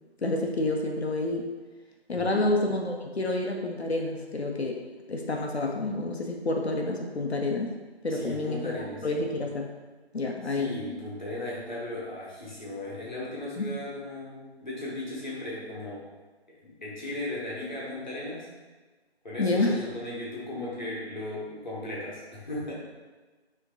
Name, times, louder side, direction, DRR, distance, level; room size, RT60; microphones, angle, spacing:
voice 1, 0.2-1.5 2.1-4.8 5.1-7.7 8.0-9.7 10.1-10.7 13.6-13.7 19.4-19.8, left 2 dB, 75° left, 2 dB, 0.6 m, -28 dB
voice 2, 2.1-2.5 8.1-9.1 10.4-16.0 16.6-18.5 19.2-22.7, left 1 dB, 45° left, -6 dB, 1.2 m, -36 dB
4.3 x 3.0 x 2.8 m, 1.3 s
figure-of-eight pair, 165°, 33 cm